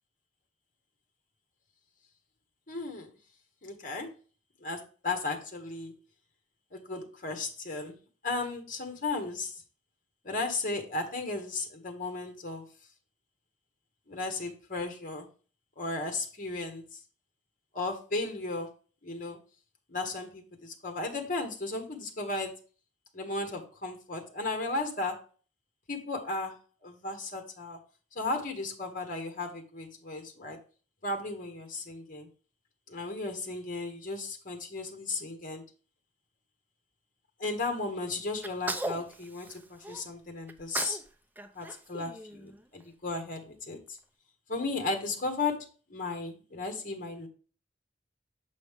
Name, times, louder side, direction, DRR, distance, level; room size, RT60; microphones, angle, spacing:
voice 1, 2.7-3.1 3.6-4.1 4.6-5.9 6.7-7.9 8.2-9.6 10.2-12.7 14.1-15.3 15.8-17.0 17.7-18.7 19.0-19.4 19.9-22.6 23.1-25.2 25.9-27.8 28.1-30.6 31.0-32.3 32.9-35.6 37.4-41.0 41.5-44.0 44.5-47.3, left 3 dB, 45° left, 4 dB, 1.2 m, -35 dB
Sneeze, 38.4-40.0 40.5-41.1 41.4-42.8, right 2 dB, 10° right, 0.6 m, -37 dB
7.3 x 5.2 x 3.5 m, 0.39 s
head